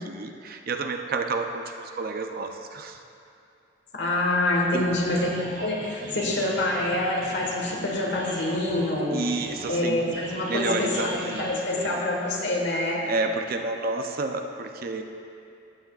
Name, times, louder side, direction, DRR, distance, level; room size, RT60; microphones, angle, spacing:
voice 1, 0.0-3.0 4.7-5.3 9.1-12.0 13.1-15.0, right 3 dB, 45° right, 5 dB, 0.5 m, -30 dB
voice 2, 3.9-5.3 5.6-9.2 9.7-13.0, left 2 dB, 60° left, -1 dB, 1.3 m, -26 dB
sound 1, 5.0-12.5, right 1 dB, 65° right, 2.1 m, -40 dB
14.5 x 8.0 x 2.4 m, 2.6 s
head